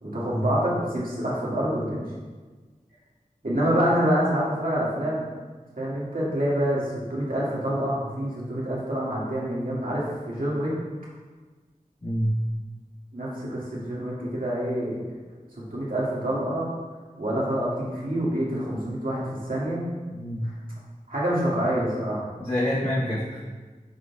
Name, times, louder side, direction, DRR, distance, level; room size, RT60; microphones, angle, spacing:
voice 1, 0.0-2.0 3.4-5.2 5.8-10.7 13.1-15.0 15.7-16.7 17.2-19.9 20.4-20.5 21.1-22.3, right 1 dB, 80° right, -7 dB, 2.0 m, -26 dB
voice 2, 12.0-12.4 20.1-20.5 22.4-23.4, equal, 40° left, -13 dB, 2.0 m, -27 dB
12.5 x 4.2 x 2.3 m, 1.3 s
wide cardioid pair, 45°, 14 cm